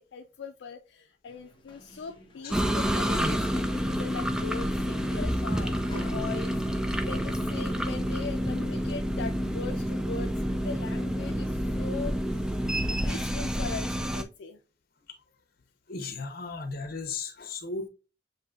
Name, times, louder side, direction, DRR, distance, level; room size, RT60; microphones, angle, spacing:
voice 1, 0.0-10.3 10.6-12.6 12.9-14.6, left 5 dB, 80° left, 0.4 m, -40 dB
sound 1, 1.2-7.8, left 1 dB, 25° left, 0.9 m, -48 dB
sound 2, 2.5-14.2, equal, 5° right, 0.3 m, -29 dB
voice 2, 15.9-17.9, left 4 dB, 55° left, 0.9 m, -35 dB
7.4 x 2.7 x 2.4 m
head